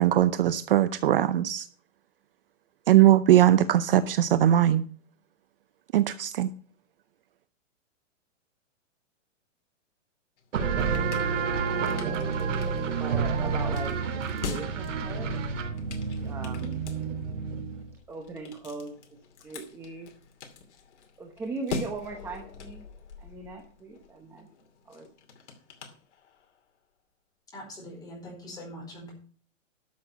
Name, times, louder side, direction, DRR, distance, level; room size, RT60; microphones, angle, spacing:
voice 1, 0.0-1.6 2.9-4.9 5.9-6.5, right 12 dB, 45° right, 13 dB, 0.6 m, -20 dB
sound 1, 10.4-26.6, left 5 dB, 60° left, 2.6 m, -43 dB
sound 2, 10.5-17.9, right 5 dB, 70° right, 3.6 m, -29 dB
voice 2, 11.4-12.0 12.3-12.6 13.0-13.9 14.4-15.3 16.2-16.8 18.1-18.9 19.4-20.1 21.2-22.8 23.2-24.5 24.9-25.1, right 3 dB, 5° right, 4 dB, 0.9 m, -39 dB
voice 3, 27.5-29.1, equal, 10° left, -2 dB, 4.7 m, -42 dB
12.5 x 6.5 x 5.8 m, 0.43 s
hypercardioid pair, 165°, 38 cm